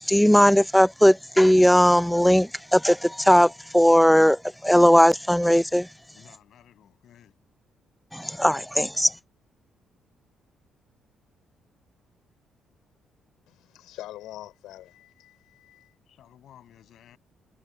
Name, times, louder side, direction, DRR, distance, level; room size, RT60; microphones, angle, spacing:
voice 1, 0.1-5.9 8.1-9.1, equal, 5° left, 0.6 m, -18 dB
voice 2, 6.1-7.4 16.0-17.2, left 11 dB, 70° left, 7.6 m, -54 dB
voice 3, 13.5-15.9, left 14 dB, 90° left, 6.2 m, -44 dB
cardioid pair, 90°, 0 cm